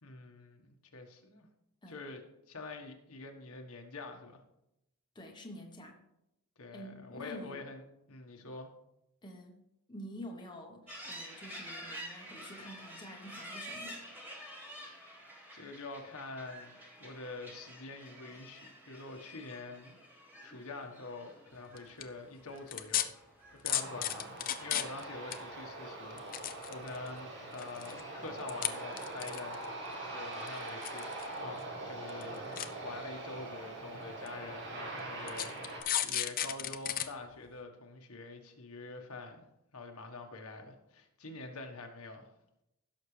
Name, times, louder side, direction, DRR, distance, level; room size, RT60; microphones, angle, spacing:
voice 1, 0.0-1.5 1.9-2.2 2.5-4.4 6.6-7.8 8.1-8.7 15.0-15.1 15.5-19.9 20.4-23.1 23.6-24.3 24.6-32.5 32.8-39.5 39.7-42.3, left 3 dB, 75° left, 3 dB, 1.4 m, -46 dB
voice 2, 5.1-6.0 6.7-7.6 9.2-9.6 9.9-14.1, equal, 20° left, 1 dB, 1.2 m, -48 dB
sound 1, 10.9-25.0, equal, 10° right, 2.1 m, -49 dB
sound 2, 21.8-22.0 22.7-23.0 23.7-25.0 25.3-25.4 26.1-27.1 27.5-28.0 28.5-28.7 29.0-29.7 30.5-31.3 31.6-31.7 32.1-32.2 32.6-32.7 33.5-33.6 34.3-34.4 35.3-37.1 37.5-37.6, left 12 dB, 40° left, 0.5 m, -33 dB
Aircraft, 23.7-35.8, right 2 dB, 55° right, 2.3 m, -43 dB
16.5 x 6.5 x 3.3 m, 0.84 s
head